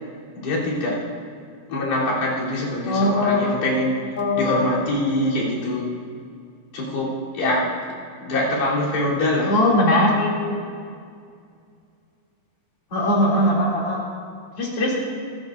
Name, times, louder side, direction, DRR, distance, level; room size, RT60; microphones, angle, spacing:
voice 1, 0.4-1.0 1.7-4.0 4.4-5.9 6.7-7.7 8.2-9.5, left 1 dB, 80° left, -7 dB, 5.7 m, -24 dB
voice 2, 2.9-3.4 4.2-4.8 9.5-10.5 12.9-14.0 14.6-14.9, left 1 dB, 40° left, -4 dB, 3.6 m, -20 dB
25.0 x 14.5 x 2.7 m, 2.2 s
omnidirectional pair, 4.5 m